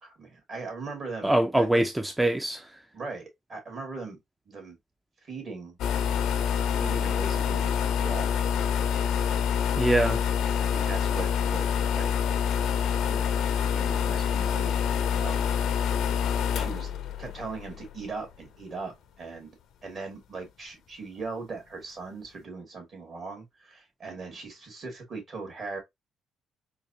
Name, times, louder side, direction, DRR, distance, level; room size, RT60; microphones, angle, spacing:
voice 1, 0.0-1.9 2.9-4.2 4.5-4.8 5.2-5.8 6.8-8.4 10.6-11.7 11.9-12.1 13.1-15.5 16.5-16.9 17.2-19.6 19.8-25.8, right 4 dB, 50° right, 2.2 m, -39 dB
voice 2, 1.2-2.8 9.8-10.2, right 1 dB, 10° right, 0.4 m, -24 dB
sound 1, 5.8-18.2, left 8 dB, 80° left, 0.6 m, -26 dB
3.9 x 2.7 x 2.7 m
cardioid pair, 90°, 0 cm